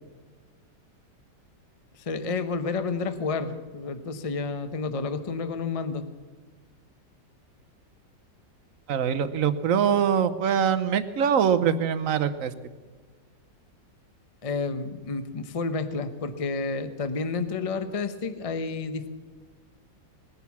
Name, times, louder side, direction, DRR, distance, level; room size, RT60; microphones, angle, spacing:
voice 1, 2.1-6.0 14.4-19.1, left 4 dB, 35° left, 10 dB, 0.5 m, -30 dB
voice 2, 8.9-12.5, right 8 dB, 60° right, 12 dB, 1.0 m, -23 dB
19.5 x 10.5 x 7.2 m, 1.4 s
omnidirectional pair, 1.9 m